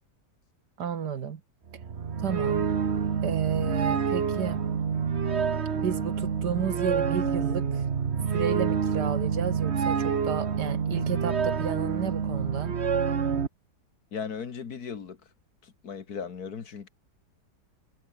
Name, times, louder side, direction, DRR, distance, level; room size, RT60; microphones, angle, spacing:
voice 1, 0.8-1.4 2.2-2.7 3.2-4.6 5.7-7.9 8.3-12.7, right 7 dB, 70° right, 2.0 m, -32 dB
sound 1, 1.7-13.5, right 6 dB, 40° right, 1.4 m, -27 dB
voice 2, 14.1-15.2 15.6-16.9, left 6 dB, 60° left, 2.1 m, -37 dB
omnidirectional pair, 1.9 m